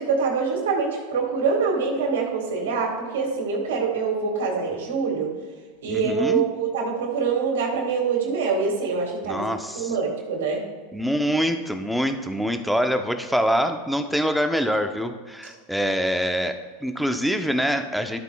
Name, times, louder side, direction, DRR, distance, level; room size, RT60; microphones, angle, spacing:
voice 1, 0.0-5.3 5.8-9.4 9.8-10.6, right 5 dB, 85° right, 0 dB, 1.8 m, -25 dB
voice 2, 5.9-6.4 9.2-9.9 10.9-18.2, equal, ahead, 6 dB, 0.6 m, -25 dB
12.5 x 8.0 x 2.3 m, 1.4 s
supercardioid pair, 120°, 0 cm